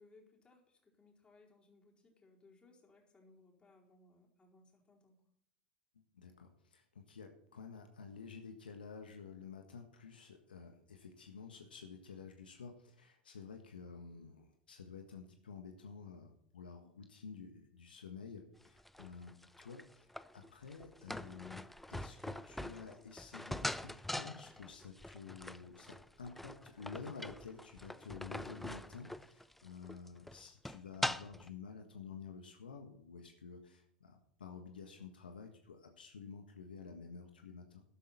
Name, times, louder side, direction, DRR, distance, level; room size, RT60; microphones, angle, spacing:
voice 1, 0.0-5.2, left 2 dB, 20° left, -2 dB, 4.4 m, -65 dB
voice 2, 6.1-37.8, left 5 dB, 80° left, 4 dB, 1.5 m, -51 dB
sound 1, 18.6-31.5, left 1 dB, 5° left, 0.5 m, -43 dB
13.0 x 12.0 x 4.3 m, 0.73 s
figure-of-eight pair, 85°, 5 cm